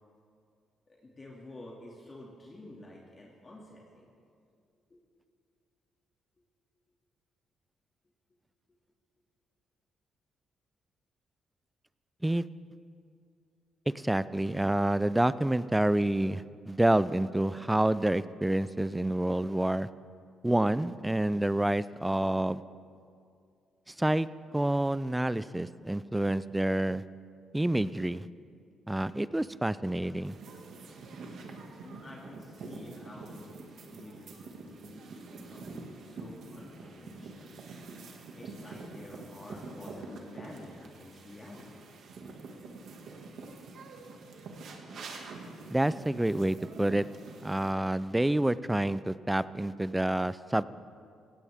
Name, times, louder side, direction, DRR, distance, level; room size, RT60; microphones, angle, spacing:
voice 1, 0.9-4.1 4.9-5.0 31.8-37.6 38.3-41.8, left 1 dB, 30° left, -3 dB, 2.3 m, -49 dB
voice 2, 13.9-19.9 20.4-22.6 24.0-24.3 24.5-27.0 27.5-28.3 28.9-30.4 45.7-47.1 47.4-50.6, right 1 dB, 10° right, 16 dB, 0.4 m, -28 dB
sound 1, 30.2-47.7, right 3 dB, 65° right, 1.9 m, -46 dB
18.0 x 16.5 x 3.6 m, 2.3 s
cardioid pair, 90°, 0 cm